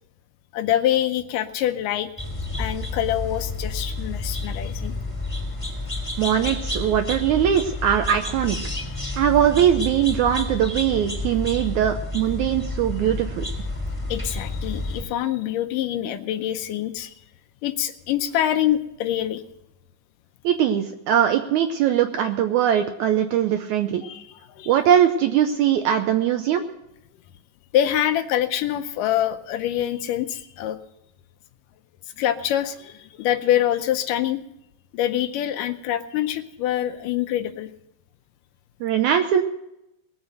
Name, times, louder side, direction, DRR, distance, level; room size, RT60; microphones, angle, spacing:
voice 1, 0.5-2.1 2.6-4.9 6.0-6.1 14.1-17.1 17.6-19.4 24.0-24.7 27.7-30.8 32.2-34.4 34.9-37.7, left 11 dB, 75° left, 10 dB, 2.1 m, -25 dB
sound 1, 2.2-15.0, left 2 dB, 5° left, 3.2 m, -30 dB
voice 2, 6.2-8.6 9.2-13.4 20.4-24.0 24.7-26.6 38.8-39.4, right 10 dB, 80° right, 7 dB, 1.7 m, -21 dB
20.0 x 8.1 x 6.4 m, 0.85 s
omnidirectional pair, 4.1 m